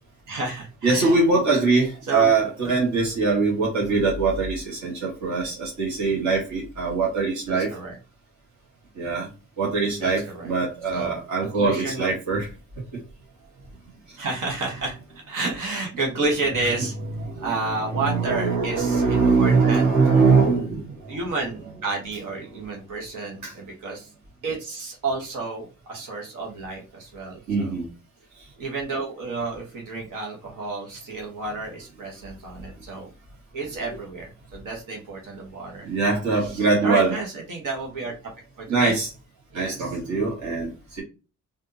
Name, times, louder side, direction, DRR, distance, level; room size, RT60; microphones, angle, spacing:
voice 1, 0.3-1.1 2.1-2.3 3.9-4.0 7.5-8.0 10.0-10.5 10.9-11.1 11.4-12.1 14.2-15.0 15.3-16.9 17.4-20.5 21.1-24.1 24.4-27.7 28.6-33.1 33.5-35.9 36.4-38.1 38.6-38.9 39.5-39.9, right 3 dB, 80° right, -1 dB, 1.2 m, -31 dB
voice 2, 0.8-7.7 9.0-9.3 9.6-12.5 17.2-21.2 23.4-23.5 27.5-27.9 33.9-34.0 35.8-37.2 38.7-39.1 39.5-41.0, right 4 dB, 65° right, -5 dB, 1.6 m, -22 dB
3.5 x 2.6 x 2.7 m, 0.32 s
cardioid pair, 65°, 31 cm